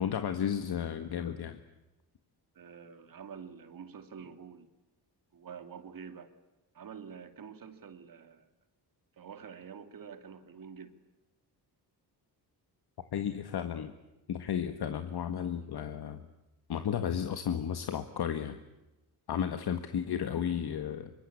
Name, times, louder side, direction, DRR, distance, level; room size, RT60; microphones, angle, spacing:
voice 1, 0.0-1.6 13.1-13.9 14.3-16.2 16.7-18.6 19.3-21.1, left 8 dB, 65° left, 9 dB, 1.7 m, -33 dB
voice 2, 2.5-4.7 5.3-6.3 6.7-8.5 9.2-11.0 19.3-19.5 20.2-20.3, right 7 dB, 55° right, 8 dB, 2.6 m, -47 dB
25.5 x 24.5 x 8.6 m, 1.0 s
wide cardioid pair, 150°, 41 cm